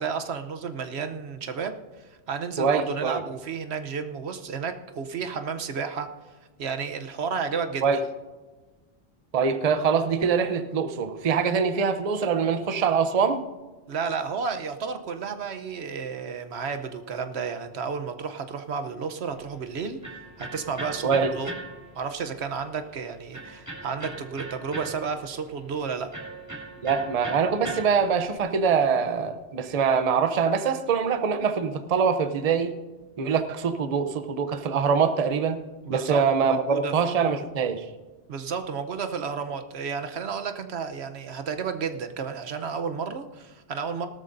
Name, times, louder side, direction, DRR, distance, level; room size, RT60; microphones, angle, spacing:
voice 1, 0.0-1.7 2.3-6.1 6.6-7.8 13.9-20.0 20.4-21.1 21.3-21.5 22.0-26.1 35.8-36.9 38.3-44.1, right 6 dB, 85° right, 7 dB, 1.1 m, -32 dB
voice 2, 2.6-3.2 7.8-8.0 9.3-13.4 21.0-21.3 26.8-32.7 33.2-35.6 35.9-37.8, right 6 dB, 40° right, 10 dB, 0.7 m, -24 dB
Electric guitar, 19.3-28.4, right 2 dB, 15° right, 2.3 m, -41 dB
18.0 x 13.0 x 2.6 m, 1.3 s
omnidirectional pair, 1.1 m